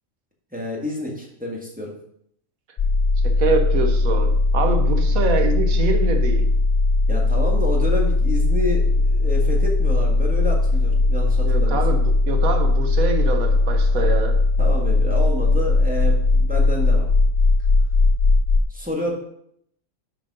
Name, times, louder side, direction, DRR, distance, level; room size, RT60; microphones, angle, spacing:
voice 1, 0.5-1.9 7.1-12.0 14.6-17.1 18.7-19.1, left 1 dB, 5° right, -2 dB, 1.8 m, -29 dB
sound 1, 2.8-18.6, left 3 dB, 55° left, 0.5 m, -19 dB
voice 2, 3.2-6.4 11.4-14.4, right 3 dB, 85° right, 5 dB, 1.5 m, -25 dB
7.0 x 5.8 x 5.4 m, 0.70 s
omnidirectional pair, 1.4 m